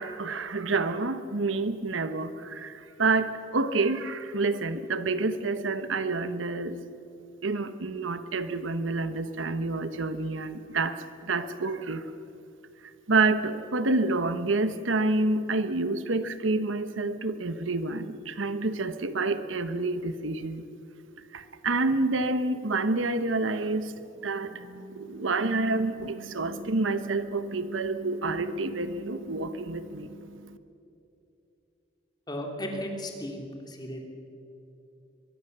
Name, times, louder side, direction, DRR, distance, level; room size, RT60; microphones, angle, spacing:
voice 1, 0.0-6.8 7.4-12.0 13.1-20.6 21.3-23.9 24.2-30.6, right 3 dB, 75° right, 11 dB, 1.0 m, -28 dB
voice 2, 32.3-34.0, equal, 20° left, 2 dB, 3.1 m, -35 dB
23.0 x 22.0 x 6.8 m, 2.8 s
head